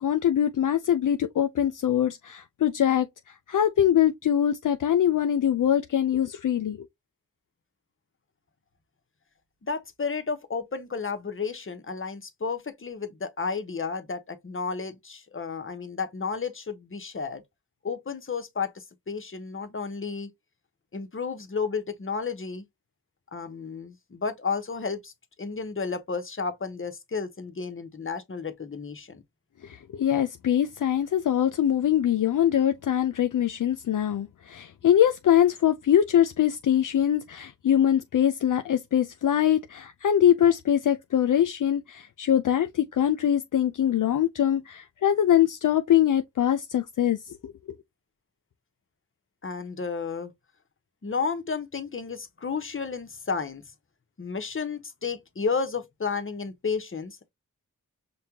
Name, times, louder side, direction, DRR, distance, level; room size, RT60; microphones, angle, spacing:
voice 1, 0.0-6.9 29.6-47.5, left 10 dB, 65° left, 0.5 m, -23 dB
voice 2, 9.6-17.4 17.8-20.3 20.9-22.6 23.3-25.1 25.4-29.2 49.4-50.3 51.0-53.6 54.2-57.3, left 5 dB, 40° left, 0.9 m, -32 dB
5.4 x 2.2 x 2.8 m
cardioid pair, 45°, 34 cm